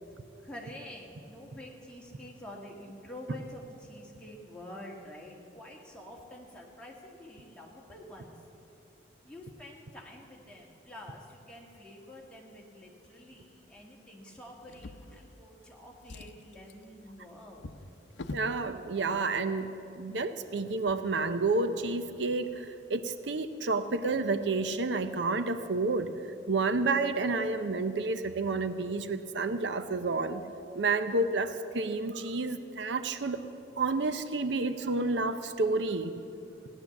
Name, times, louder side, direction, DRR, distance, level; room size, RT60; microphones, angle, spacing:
voice 1, 0.0-8.3 9.2-17.7, left 1 dB, 5° left, -3 dB, 2.0 m, -48 dB
Drawer open or close, 14.6-15.6 16.0-18.6 19.5-19.6 20.0-20.1, left 2 dB, 80° left, 0.6 m, -45 dB
voice 2, 18.3-26.1 26.5-30.4 30.7-33.4 33.8-36.1, right 3 dB, 80° right, 10 dB, 0.7 m, -30 dB
16.5 x 10.0 x 7.1 m, 2.9 s
head